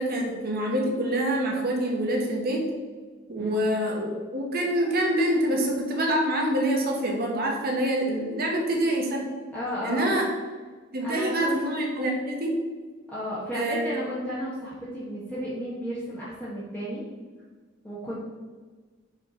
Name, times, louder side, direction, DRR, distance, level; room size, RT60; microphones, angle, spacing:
voice 1, 0.0-2.6 3.3-9.2 9.8-10.3 10.9-12.5 13.5-13.8, right 1 dB, 50° right, 0 dB, 1.2 m, -26 dB
voice 2, 9.5-10.2 11.0-11.6 13.1-17.0 17.8-18.2, equal, 10° left, -8 dB, 1.2 m, -33 dB
5.2 x 4.6 x 5.6 m, 1.4 s
head